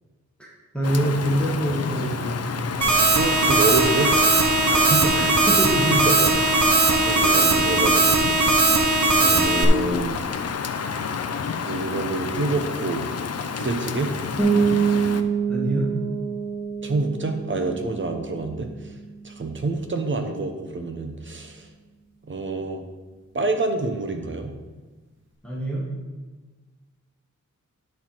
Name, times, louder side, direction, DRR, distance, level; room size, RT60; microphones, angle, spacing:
voice 1, 0.4-2.8 5.1-6.0 9.3-9.5 15.5-15.9 25.4-25.9, right 1 dB, 5° left, -5 dB, 1.7 m, -26 dB
Rain, 0.8-15.2, left 6 dB, 55° left, 0.5 m, -30 dB
sound 1, 2.8-9.6, right 3 dB, 65° right, 1.1 m, -19 dB
voice 2, 3.1-4.1 4.7-5.3 6.1-6.4 6.9-8.7 9.2-10.2 11.7-13.1 13.5-14.1 16.8-18.9 19.2-21.7 22.3-22.8 23.3-24.5, right 3 dB, 40° right, 5 dB, 1.0 m, -27 dB
sound 2, 14.4-20.0, right 6 dB, 20° right, 2.6 m, -26 dB
9.8 x 4.6 x 5.6 m, 1.3 s
wide cardioid pair, 140°, 30 cm